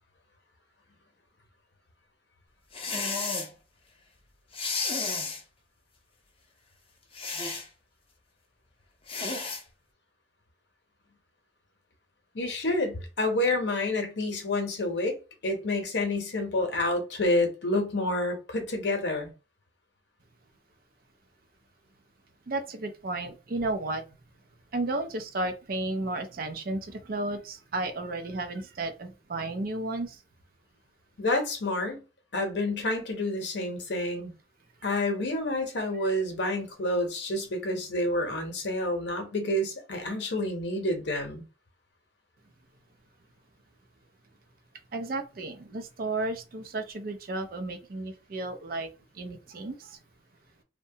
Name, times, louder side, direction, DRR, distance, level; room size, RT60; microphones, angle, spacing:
sound 1, 2.7-3.5 4.5-5.4 7.1-7.7 9.1-9.6, left 4 dB, 30° left, 0.5 m, -32 dB
voice 1, 12.3-15.2 15.4-19.3 31.2-32.0 32.3-34.3 34.8-41.4, left 1 dB, 65° left, 0.8 m, -28 dB
voice 2, 22.5-24.0 24.7-30.2 36.0-36.1 44.9-48.9 49.1-50.0, right 2 dB, 50° right, 0.4 m, -33 dB
2.7 x 2.1 x 2.7 m
head